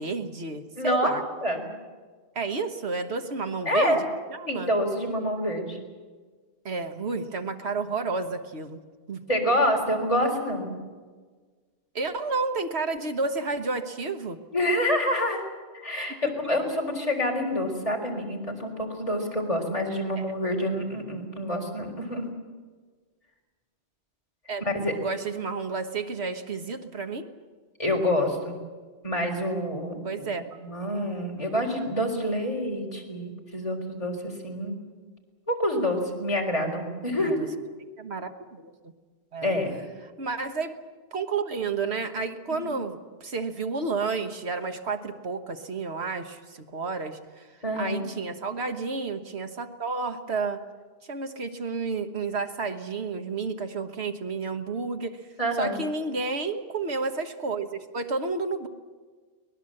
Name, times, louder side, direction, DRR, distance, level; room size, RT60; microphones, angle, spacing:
voice 1, 0.0-1.2 2.3-4.0 4.3-4.7 6.6-8.8 9.1-9.2 11.9-14.4 24.5-24.6 24.9-27.2 30.0-30.4 37.2-37.5 38.0-38.6 39.3-39.5 40.2-40.7 41.1-47.5 47.8-50.6 51.1-55.2 55.6-58.7, right 4 dB, 75° right, 7 dB, 1.6 m, -31 dB
voice 2, 0.8-1.2 1.4-1.7 3.7-4.0 4.5-5.8 9.3-10.8 14.5-15.4 15.8-22.3 24.6-24.9 27.8-28.5 29.0-30.0 30.6-34.8 35.5-37.4 39.4-39.8 42.5-42.7 47.6-48.0 55.4-55.8, left 1 dB, 30° left, 1 dB, 4.2 m, -27 dB
23.5 x 20.0 x 7.8 m, 1.4 s
omnidirectional pair, 1.1 m